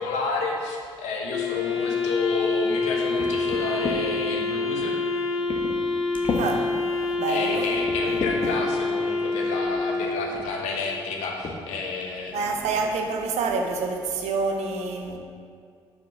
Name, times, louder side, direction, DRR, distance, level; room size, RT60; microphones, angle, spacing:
voice 1, 0.0-5.0 7.3-12.8, left 4 dB, 70° left, 0 dB, 1.0 m, -30 dB
Wind instrument woodwind instrument, 1.3-10.5, left 3 dB, 90° left, 1.3 m, -27 dB
sound 1, 3.2-4.0 4.7-4.9 5.5-5.8 6.1-6.5 7.1-7.2 7.8-8.5 9.6-9.8 10.3-10.5 11.4-11.6 12.0-12.1 12.4-12.8, left 4 dB, 40° left, 1.0 m, -32 dB
voice 2, 6.4-6.7 7.2-7.7 8.0-8.6 12.3-15.2, right 4 dB, 65° right, 4 dB, 0.8 m, -28 dB
5.0 x 4.8 x 5.9 m, 2.2 s
hypercardioid pair, 45°, 12 cm